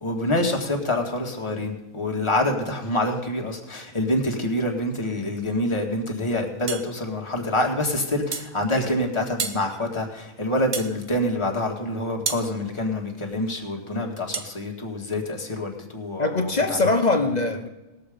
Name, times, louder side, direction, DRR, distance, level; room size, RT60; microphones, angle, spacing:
voice 1, 0.0-16.9, left 1 dB, 20° left, 0 dB, 1.7 m, -26 dB
sound 1, 6.7-6.9 8.3-8.5 9.4-9.6 10.7-11.0 12.3-12.5 14.3-14.5, right 5 dB, 40° right, 0.9 m, -29 dB
voice 2, 16.2-17.7, left 3 dB, 40° left, 7 dB, 0.8 m, -22 dB
19.0 x 6.9 x 5.1 m, 1.1 s
omnidirectional pair, 1.4 m